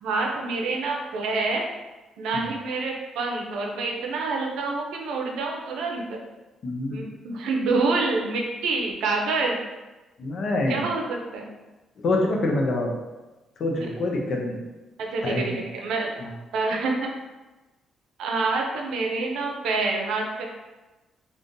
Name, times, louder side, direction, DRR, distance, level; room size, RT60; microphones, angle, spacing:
voice 1, 0.0-1.6 2.2-6.2 6.9-9.6 10.7-11.5 15.0-16.1 16.5-17.1 18.2-20.5, right 3 dB, 85° right, 1 dB, 0.5 m, -27 dB
voice 2, 6.6-7.0 10.2-10.9 12.0-12.9 13.6-14.6 15.2-15.6 16.2-16.3, left 2 dB, 60° left, 1 dB, 0.6 m, -26 dB
3.6 x 2.5 x 2.6 m, 1.1 s
cardioid pair, 90°, 0 cm